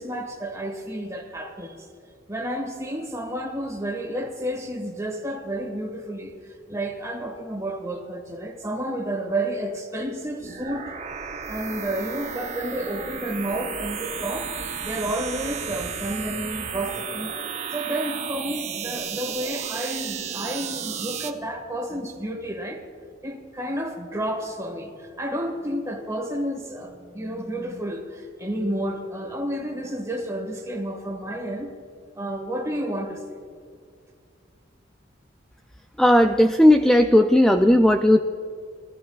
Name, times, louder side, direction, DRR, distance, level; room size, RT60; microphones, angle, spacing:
voice 1, 0.0-1.9 2.3-6.3 6.7-10.9 11.5-14.5 14.8-17.3 17.7-22.8 23.2-31.7 32.1-33.4, right 1 dB, 15° right, 2 dB, 1.7 m, -31 dB
sound 1, 10.4-21.3, right 7 dB, 35° right, 0.7 m, -33 dB
voice 2, 36.0-38.2, left 1 dB, 5° left, 5 dB, 0.3 m, -16 dB
22.0 x 14.0 x 2.4 m, 2.2 s
head